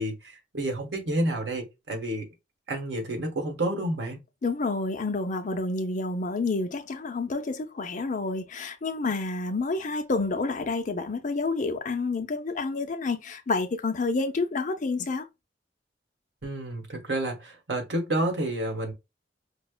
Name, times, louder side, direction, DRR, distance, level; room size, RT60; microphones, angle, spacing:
voice 1, 0.0-2.3 2.7-4.2 16.4-18.9, right 1 dB, 80° right, 1.2 m, -30 dB
voice 2, 4.4-15.2, left 3 dB, 45° left, 0.5 m, -29 dB
5.1 x 2.1 x 2.2 m
head